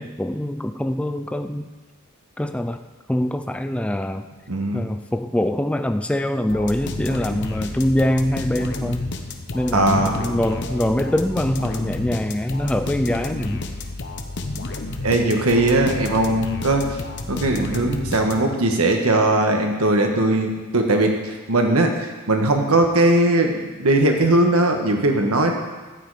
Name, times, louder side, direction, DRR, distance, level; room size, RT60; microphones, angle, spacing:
voice 1, 0.0-1.7 2.4-2.8 3.1-4.3 4.7-9.1 9.5-13.7, left 1 dB, 5° left, 8 dB, 0.3 m, -23 dB
voice 2, 4.5-4.8 9.7-10.2 14.5-14.6 15.0-16.8 17.3-25.5, right 2 dB, 80° right, 3 dB, 1.4 m, -19 dB
sound 1, 6.5-18.7, left 2 dB, 55° left, 0.9 m, -31 dB
12.5 x 8.9 x 4.9 m, 1.3 s
head